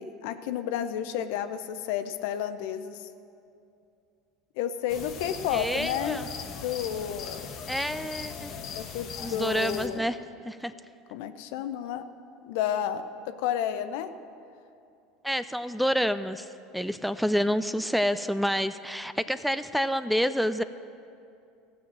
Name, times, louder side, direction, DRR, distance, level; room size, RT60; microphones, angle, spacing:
voice 1, 0.0-3.1 4.6-6.2 6.6-7.5 8.8-10.1 11.1-12.0 12.4-14.1, left 10 dB, 70° left, 10 dB, 0.6 m, -31 dB
sound 1, 4.9-9.9, left 6 dB, 55° left, 1.2 m, -39 dB
voice 2, 5.5-6.3 7.7-8.5 9.2-10.2 10.4-10.7 15.2-16.5 16.7-20.6, equal, ahead, 13 dB, 0.4 m, -28 dB
15.5 x 5.9 x 7.4 m, 2.6 s
hypercardioid pair, 85°, 0 cm